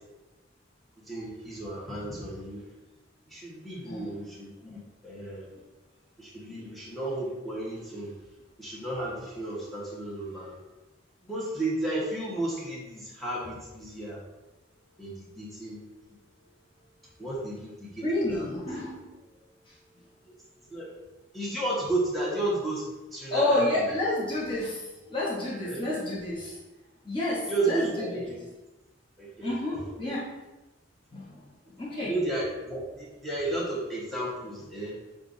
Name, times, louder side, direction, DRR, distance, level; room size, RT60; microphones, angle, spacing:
voice 1, 1.1-2.6 3.3-5.4 6.2-8.1 8.6-10.5 11.2-14.2 15.0-15.8 17.2-18.4 20.2-20.3 20.7-20.9 21.3-23.6 25.6-25.9 27.5-28.4 29.2-29.8 32.0-34.9, right 2 dB, ahead, -7 dB, 1.1 m, -33 dB
voice 2, 3.8-4.4 5.5-5.6 6.4-6.6 18.0-19.0 23.3-24.8 25.1-26.6 27.0-28.3 29.4-30.2 31.1-32.1, left 2 dB, 25° left, -7 dB, 1.0 m, -30 dB
6.5 x 2.5 x 2.6 m, 1.1 s
head